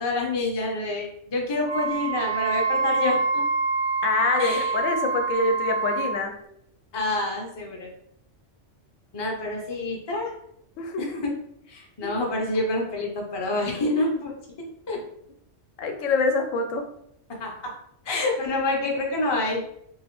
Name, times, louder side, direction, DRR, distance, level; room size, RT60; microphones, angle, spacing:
voice 1, 0.0-3.4 4.3-4.8 6.9-7.9 9.1-10.3 11.0-11.3 11.7-14.3 14.6-15.0 17.3-17.7 18.1-19.6, left 2 dB, 30° left, 0 dB, 0.5 m, -27 dB
Wind instrument woodwind instrument, 1.6-6.2, right 4 dB, 55° right, 0.6 m, -26 dB
voice 2, 4.0-6.4 10.8-11.2 12.0-12.1 13.9-14.0 15.8-16.9, left 3 dB, 85° left, 4 dB, 0.9 m, -25 dB
2.9 x 2.8 x 3.0 m, 0.73 s
omnidirectional pair, 1.3 m